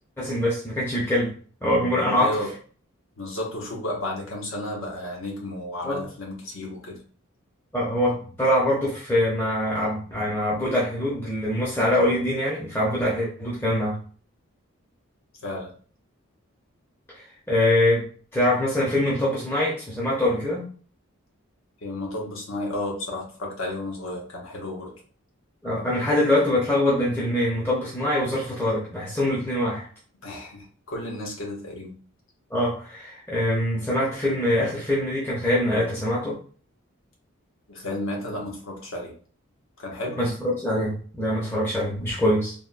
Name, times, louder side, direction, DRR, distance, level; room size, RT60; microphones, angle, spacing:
voice 1, 0.2-1.3 1.6-2.3 5.8-6.0 7.7-14.0 17.1-18.1 18.3-20.6 25.6-29.8 32.5-36.4 40.2-42.5, left 1 dB, 10° left, -7 dB, 0.6 m, -24 dB
voice 2, 2.2-2.5 3.2-7.0 15.4-15.7 21.8-24.9 30.2-31.9 37.7-39.1 39.8-40.2, left 1 dB, 70° left, -1 dB, 0.9 m, -32 dB
3.4 x 2.2 x 2.5 m, 0.43 s
head